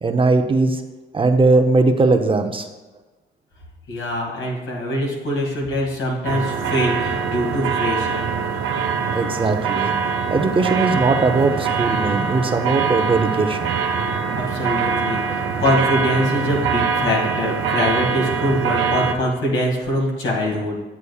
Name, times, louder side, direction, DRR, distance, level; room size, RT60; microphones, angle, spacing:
voice 1, 0.0-0.8 1.1-2.7 9.1-9.9 10.3-13.8, right 3 dB, 25° right, 5 dB, 0.6 m, -19 dB
voice 2, 3.9-8.2 14.3-20.8, left 1 dB, 80° left, -2 dB, 2.2 m, -23 dB
sound 1, 6.2-19.1, right 5 dB, 90° right, 0.6 m, -23 dB
8.3 x 8.2 x 2.4 m, 1.2 s
cardioid pair, 90°, 20 cm